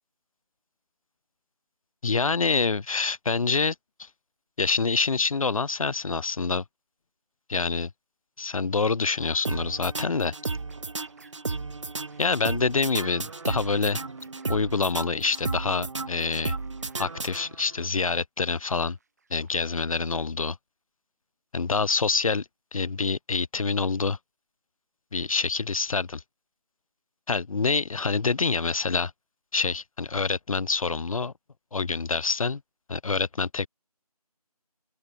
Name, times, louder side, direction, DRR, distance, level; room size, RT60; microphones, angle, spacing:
voice 1, 2.0-4.1 4.6-6.6 7.5-7.9 8.4-10.3 12.2-14.0 14.5-16.6 17.0-19.0 19.3-20.6 21.5-22.5 22.7-24.2 25.1-26.2 27.3-29.1 29.5-31.3 31.7-32.6 32.9-33.7, left 4 dB, 60° left, 0.5 m, -26 dB
sound 1, 9.4-17.8, right 3 dB, 50° right, 0.4 m, -34 dB
sound 2, 10.4-11.6 12.1-18.0 18.5-19.6, right 4 dB, 25° right, 2.2 m, -57 dB
open air
figure-of-eight pair, 170°, 20 cm